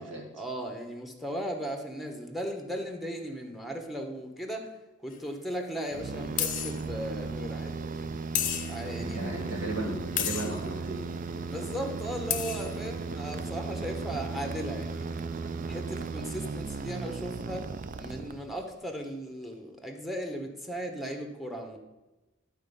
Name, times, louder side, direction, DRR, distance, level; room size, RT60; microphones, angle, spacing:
voice 1, 0.0-4.7 5.0-8.2 8.7-9.4 11.5-15.2 15.7-17.7 18.0-21.8, equal, ahead, 3 dB, 1.0 m, -37 dB
sound 1, 5.1-5.2 6.4-6.8 8.3-8.9 10.2-10.6 12.0-12.1 12.3-12.8, left 10 dB, 40° left, 0.7 m, -31 dB
sound 2, 5.9-18.8, right 4 dB, 40° right, 0.4 m, -36 dB
voice 2, 9.0-11.0, right 2 dB, 70° right, 0 dB, 1.8 m, -35 dB
11.5 x 4.5 x 5.3 m, 1.1 s
head